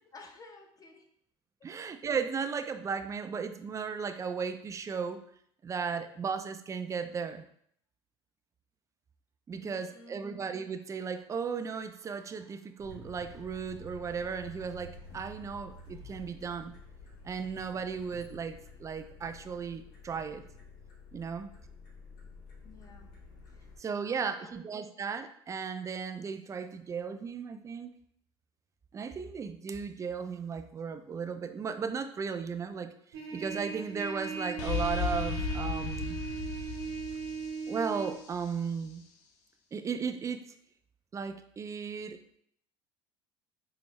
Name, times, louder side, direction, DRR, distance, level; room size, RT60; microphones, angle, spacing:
voice 1, 0.1-1.1 1.6-1.7 9.5-10.3 22.6-23.1 23.5-24.9, left 3 dB, 25° left, 3 dB, 0.7 m, -53 dB
voice 2, 1.6-5.2 5.6-7.4 9.5-16.7 17.2-20.4 21.1-21.5 23.8-27.9 28.9-32.9 33.3-36.2 37.7-39.0 39.7-40.4 41.1-42.2, right 6 dB, 25° right, 8 dB, 0.3 m, -35 dB
sound 1, 12.8-23.8, left 2 dB, 80° left, 1.2 m, -50 dB
Trumpet, 33.1-38.2, right 5 dB, 85° right, 1.0 m, -38 dB
sound 2, 34.6-38.3, left 6 dB, 60° left, 0.6 m, -35 dB
4.6 x 2.0 x 3.1 m, 0.68 s
hypercardioid pair, 80°, 13 cm